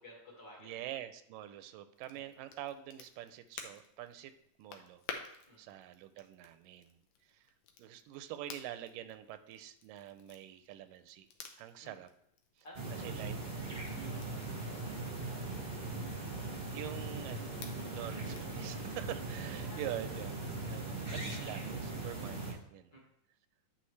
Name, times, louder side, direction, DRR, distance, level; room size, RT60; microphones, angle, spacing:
voice 1, 0.0-0.8 2.1-2.2 5.5-5.6 11.8-11.9 12.6-13.2 14.0-15.5 19.6-19.9 22.9-23.0, left 1 dB, 40° left, -4 dB, 2.2 m, -55 dB
voice 2, 0.6-4.3 4.6-5.0 5.6-7.0 7.3-7.4 7.8-11.3 11.6-12.1 13.0-13.3 16.7-23.0, right 12 dB, 85° right, 11 dB, 2.2 m, -45 dB
Crackle, 1.9-18.6, left 6 dB, 70° left, 1.8 m, -53 dB
sound 1, 12.7-22.5, right 3 dB, 30° right, 1.1 m, -40 dB
9.9 x 6.2 x 3.2 m, 0.71 s
omnidirectional pair, 3.8 m